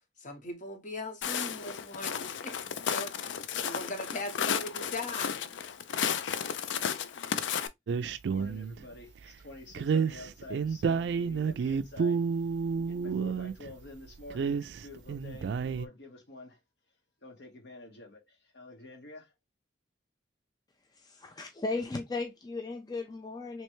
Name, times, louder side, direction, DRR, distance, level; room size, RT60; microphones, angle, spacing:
voice 1, 0.2-2.6 2.9-3.3 3.6-5.5, left 2 dB, 45° left, 0.9 m, -39 dB
Walk footsteps, 1.2-7.7, left 8 dB, 85° left, 0.4 m, -33 dB
sound 1, 7.9-8.8 9.7-13.7 14.2-15.9, right 5 dB, 65° right, 0.3 m, -30 dB
voice 2, 8.3-12.2 12.8-16.6 17.2-19.3, left 2 dB, 70° left, 1.2 m, -49 dB
voice 3, 20.9-23.6, left 3 dB, 20° left, 0.4 m, -36 dB
3.2 x 3.0 x 3.0 m
head